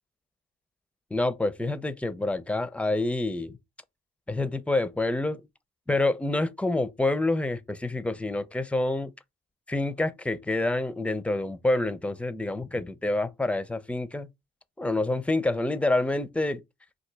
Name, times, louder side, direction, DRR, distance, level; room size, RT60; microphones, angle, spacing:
voice 1, 1.1-3.6 4.3-5.4 5.9-9.1 9.7-14.3 14.8-16.6, left 2 dB, 5° left, 0.5 m, -27 dB
3.9 x 2.5 x 4.6 m
cardioid pair, 90°, 20 cm